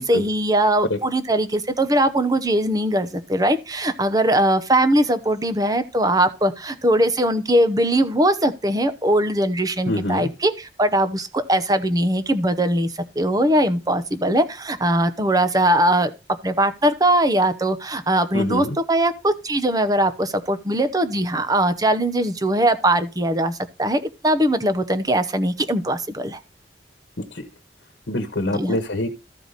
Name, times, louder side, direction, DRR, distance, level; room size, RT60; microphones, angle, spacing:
voice 1, 0.0-16.1 16.4-26.4 28.5-28.8, right 1 dB, 20° right, 0.8 m, -20 dB
voice 2, 9.9-10.3 18.3-18.8 27.2-27.5 28.1-29.1, left 1 dB, 70° left, 1.3 m, -25 dB
14.0 x 4.8 x 4.0 m
head